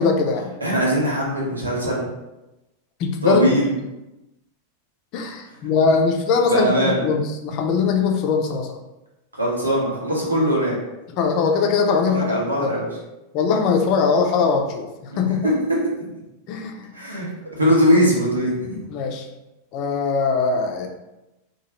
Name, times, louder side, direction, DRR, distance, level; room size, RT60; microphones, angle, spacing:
voice 1, 0.0-0.5 3.0-3.5 5.1-8.7 11.2-12.3 12.6-12.7 13.3-15.4 16.5-16.9 18.9-19.3 19.7-20.9, left 5 dB, 40° left, 2 dB, 0.4 m, -21 dB
voice 2, 0.6-2.0 3.2-3.7 6.5-7.1 9.3-10.8 12.1-12.9 15.1-16.1 16.9-17.3 17.5-18.9, equal, 80° right, -3 dB, 0.8 m, -21 dB
3.0 x 2.3 x 2.9 m, 0.98 s
figure-of-eight pair, 90°, 0 cm